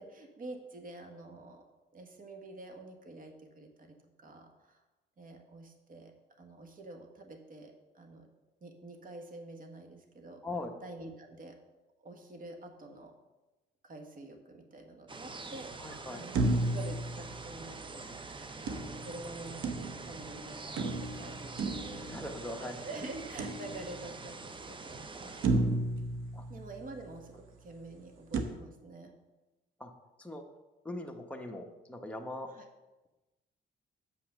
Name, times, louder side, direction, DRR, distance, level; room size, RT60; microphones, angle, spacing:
voice 1, 0.0-1.6 1.9-4.8 5.2-8.3 8.6-10.4 10.8-11.6 12.0-13.1 13.8-15.7 16.1-22.1 22.5-25.5 26.5-29.1 32.5-32.7, right 2 dB, 45° right, 4 dB, 1.5 m, -47 dB
sound 1, 15.1-25.5, right 3 dB, 25° right, 0.7 m, -45 dB
voice 2, 15.8-16.2 22.0-22.8 26.3-26.4 29.8-29.9 30.2-30.4 30.8-32.5, left 2 dB, 5° left, 2 dB, 1.1 m, -40 dB
sound 2, 16.3-18.0 18.7-20.3 20.8-22.7 23.4-24.2 24.7-24.8 25.4-27.1 28.3-28.4, right 2 dB, 80° right, 0.9 m, -33 dB
7.0 x 5.7 x 6.5 m, 1.1 s
cardioid pair, 90°, 20 cm